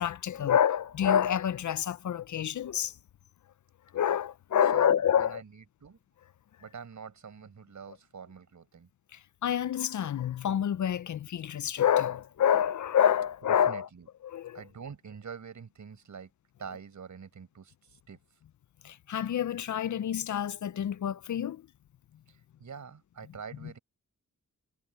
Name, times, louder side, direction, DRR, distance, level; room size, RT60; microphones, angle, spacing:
voice 1, 0.0-2.9 3.9-5.4 9.1-13.9 14.2-14.6 18.8-21.6, left 9 dB, 60° left, 0.5 m, -27 dB
voice 2, 4.7-6.0 6.6-8.9 13.7-14.1 14.5-16.3 16.6-17.7 18.1-18.2 22.6-23.8, right 6 dB, 60° right, 5.4 m, -45 dB
wide cardioid pair, 125°, 33 cm